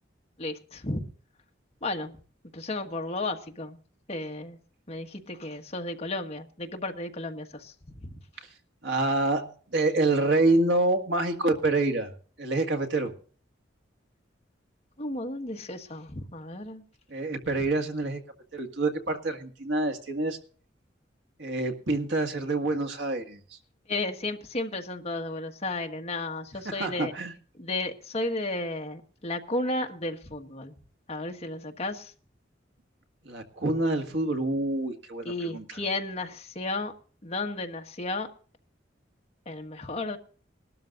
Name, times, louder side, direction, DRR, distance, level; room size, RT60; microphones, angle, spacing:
voice 1, 0.4-1.0 1.8-2.1 2.5-3.8 4.1-4.6 4.9-7.7 8.0-8.1 15.0-16.8 23.9-27.1 27.6-30.7 31.1-32.1 35.2-36.9 37.2-38.3 39.4-40.2, left 2 dB, 35° left, 3 dB, 1.5 m, -33 dB
voice 2, 8.8-12.1 12.4-13.1 17.1-18.2 18.5-20.4 21.4-23.4 26.7-27.3 33.3-35.6, right 2 dB, 75° right, 4 dB, 1.9 m, -27 dB
20.5 x 12.5 x 2.6 m, 0.43 s
head